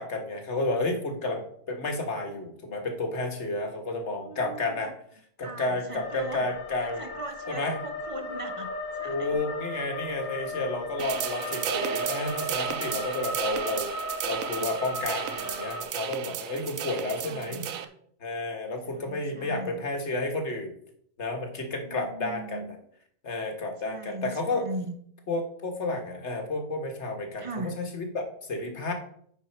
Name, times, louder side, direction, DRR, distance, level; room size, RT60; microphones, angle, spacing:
voice 1, 0.0-4.9 5.4-7.0 7.5-7.7 9.0-13.9 14.2-17.7 18.2-20.7 21.2-22.6 23.2-24.7 25.3-28.9, left 2 dB, 50° left, 4 dB, 1.8 m, -31 dB
voice 2, 4.2-4.9 5.4-6.4 7.0-8.7 9.0-9.4 17.2-17.9 18.9-19.8 21.9-22.7 23.8-25.0 27.4-27.8, right 2 dB, 35° right, 8 dB, 0.5 m, -39 dB
sound 1, 5.9-15.8, left 1 dB, 90° left, 2.5 m, -36 dB
sound 2, 11.0-17.8, right 9 dB, 70° right, 1.1 m, -34 dB
9.2 x 5.7 x 4.4 m, 0.64 s
omnidirectional pair, 1.5 m